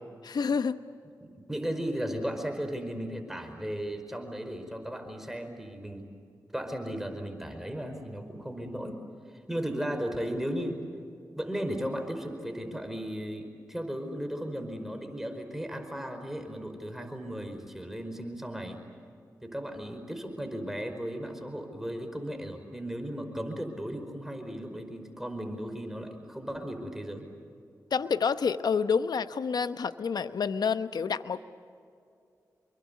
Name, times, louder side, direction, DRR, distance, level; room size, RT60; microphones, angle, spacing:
voice 1, 0.2-0.8 27.9-31.5, left 6 dB, 75° left, 12 dB, 0.9 m, -28 dB
voice 2, 1.2-6.1 6.5-9.0 9.5-10.8 11.4-18.8 19.4-27.3, equal, 5° right, 5 dB, 5.1 m, -36 dB
27.5 x 23.0 x 8.3 m, 2.4 s
cardioid pair, 45°, 7 cm